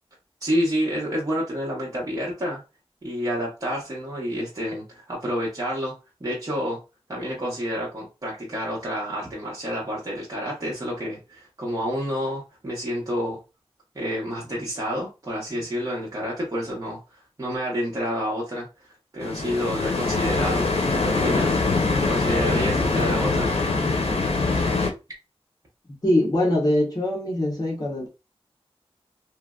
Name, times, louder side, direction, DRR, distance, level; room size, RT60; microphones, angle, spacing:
voice 1, 0.4-2.6 3.0-5.9 6.2-6.8 7.1-13.4 13.9-18.7 19.1-21.6 22.1-23.5, equal, 35° right, 1.2 m, -29 dB
sound 1, 19.2-24.9, left 3 dB, 75° left, 0.7 m, -23 dB
voice 2, 26.0-28.1, left 1 dB, 40° left, 1.2 m, -23 dB
3.1 x 2.5 x 2.4 m
wide cardioid pair, 80°, 10 cm